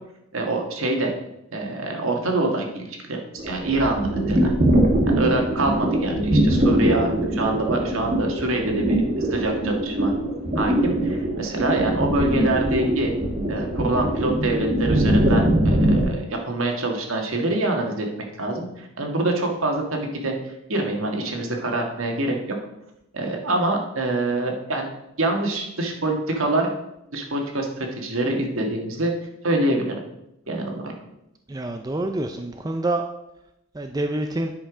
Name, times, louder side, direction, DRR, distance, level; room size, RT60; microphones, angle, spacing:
voice 1, 0.3-1.1 1.5-4.5 5.0-10.1 10.5-13.1 13.5-18.1 18.4-20.3 20.7-22.4 23.1-24.9 25.2-26.7 27.1-29.1 29.4-29.9 30.5-30.9, right 2 dB, 70° right, 2 dB, 1.6 m, -25 dB
sound 1, 3.4-16.0, right 1 dB, 35° right, 1.5 m, -22 dB
voice 2, 31.5-33.0 33.7-34.5, right 2 dB, 15° right, 5 dB, 0.4 m, -27 dB
9.9 x 5.7 x 4.9 m, 0.86 s
head